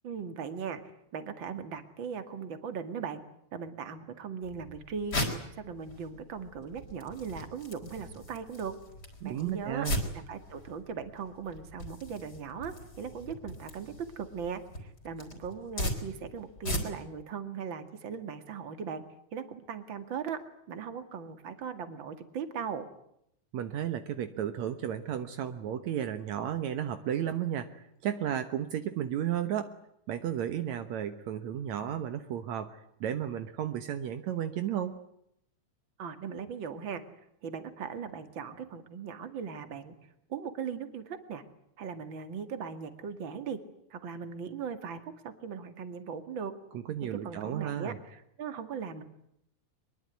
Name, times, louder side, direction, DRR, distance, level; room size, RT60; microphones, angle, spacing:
voice 1, 0.0-0.8 1.1-3.2 3.5-5.2 5.5-8.7 9.2-9.9 10.1-19.0 19.3-20.4 20.7-22.9 36.0-37.0 37.4-40.0 40.3-41.4 41.8-43.6 43.9-46.5 47.0-49.0, right 6 dB, 45° right, 9 dB, 2.6 m, -39 dB
sound 1, 4.4-17.2, left 1 dB, 30° left, 5.1 m, -39 dB
voice 2, 9.2-10.0 23.5-29.8 30.1-35.0 46.7-48.0, right 10 dB, 70° right, 9 dB, 2.4 m, -33 dB
24.0 x 22.5 x 9.4 m, 0.76 s
omnidirectional pair, 3.4 m